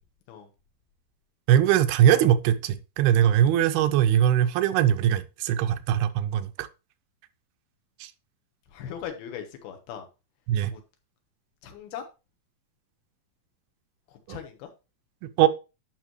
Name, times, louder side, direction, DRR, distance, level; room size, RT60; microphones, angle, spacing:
voice 1, 1.5-6.7 8.0-8.1 10.5-10.7 14.3-14.4 15.4-15.5, right 11 dB, 90° right, 2.6 m, -21 dB
voice 2, 8.7-10.1 10.7-10.8 11.6-12.0 14.3-14.7, left 9 dB, 90° left, 3.1 m, -38 dB
11.0 x 5.4 x 3.1 m
omnidirectional pair, 4.3 m